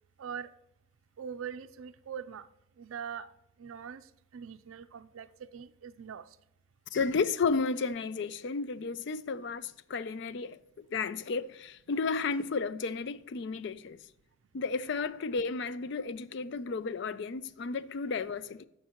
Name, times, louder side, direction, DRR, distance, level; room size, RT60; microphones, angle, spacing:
voice 1, 0.2-0.5 1.2-2.5 2.8-3.3 3.6-4.0 4.3-5.3 5.5-6.2, right 7 dB, 75° right, 0.4 m, -42 dB
voice 2, 6.9-14.0 14.5-18.7, left 4 dB, 60° left, 0.4 m, -33 dB
13.5 x 4.7 x 2.9 m
head